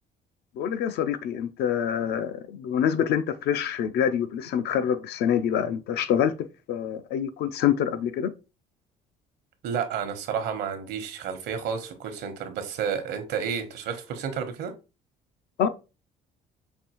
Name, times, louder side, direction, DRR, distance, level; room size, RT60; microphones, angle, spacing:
voice 1, 0.6-6.3 6.7-8.3 15.6-15.7, left 9 dB, 75° left, 0.6 m, -26 dB
voice 2, 9.6-14.7, right 7 dB, 80° right, 1.0 m, -31 dB
5.2 x 2.6 x 2.9 m
cardioid pair, 110°, 17 cm